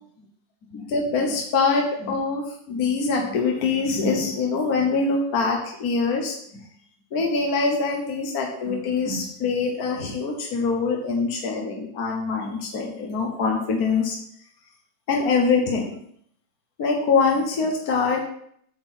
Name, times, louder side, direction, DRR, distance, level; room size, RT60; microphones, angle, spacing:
voice 1, 0.7-6.3 7.1-14.2 15.1-15.9 16.8-18.2, left 4 dB, 60° left, 0 dB, 1.6 m, -24 dB
8.8 x 4.0 x 7.2 m, 0.67 s
omnidirectional pair, 1.9 m